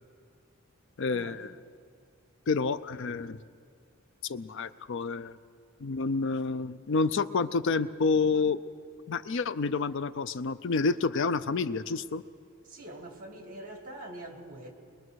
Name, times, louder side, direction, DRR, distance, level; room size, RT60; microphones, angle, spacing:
voice 1, 1.0-1.5 2.5-3.4 4.2-5.4 5.8-8.6 9.1-12.2, left 4 dB, 60° left, 14 dB, 0.5 m, -29 dB
voice 2, 12.6-14.7, right 1 dB, 40° right, 3 dB, 2.3 m, -44 dB
22.5 x 21.5 x 6.3 m, 2.2 s
head